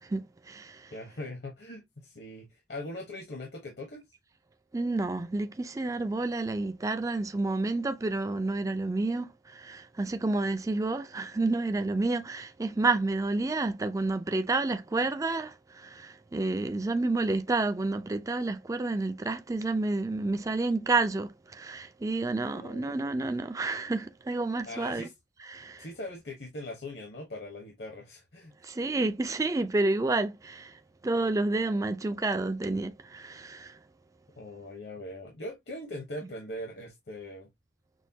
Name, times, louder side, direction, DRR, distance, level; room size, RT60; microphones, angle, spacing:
voice 1, 0.0-0.9 4.7-25.1 25.5-25.9 28.6-33.8, right 2 dB, 20° right, 0.4 m, -30 dB
voice 2, 0.9-4.0 22.5-23.0 24.6-25.1 25.8-28.5 34.4-37.5, left 1 dB, 65° left, 1.1 m, -41 dB
6.2 x 2.3 x 2.7 m
head